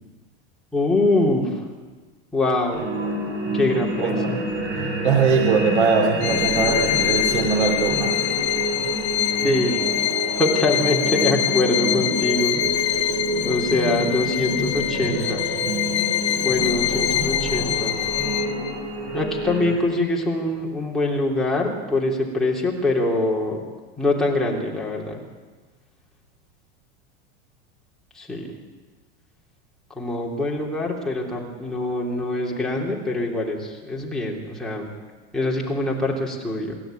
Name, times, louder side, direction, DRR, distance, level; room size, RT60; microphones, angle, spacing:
voice 1, 0.7-1.5 2.3-2.9 3.5-4.4 9.4-9.9 10.4-13.1 13.4-15.5 16.4-18.0 19.1-23.6 24.0-25.2 28.1-28.5 29.9-34.9 35.3-36.8, left 2 dB, ahead, -4 dB, 3.2 m, -24 dB
sound 1, 2.7-19.7, right 1 dB, 35° right, 6.3 m, -28 dB
voice 2, 5.0-8.2, right 5 dB, 80° right, 3 dB, 2.8 m, -21 dB
Bowed string instrument, 6.2-18.7, left 13 dB, 75° left, 1.7 m, -25 dB
27.0 x 13.0 x 9.1 m, 1.4 s
supercardioid pair, 170°, 33 cm